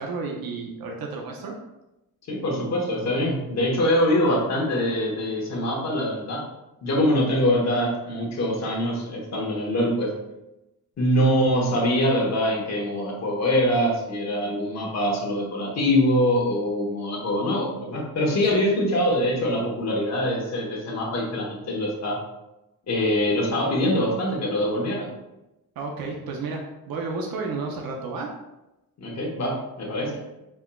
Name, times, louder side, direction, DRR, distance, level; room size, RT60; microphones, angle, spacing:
voice 1, 0.0-1.5 18.5-18.7 25.8-28.3, right 4 dB, 70° right, 0 dB, 0.7 m, -32 dB
voice 2, 2.3-6.4 6.8-10.1 11.0-22.2 22.9-25.1 29.0-30.2, left 1 dB, 45° left, -2 dB, 1.2 m, -24 dB
4.5 x 4.3 x 2.3 m, 0.95 s
wide cardioid pair, 160°, 37 cm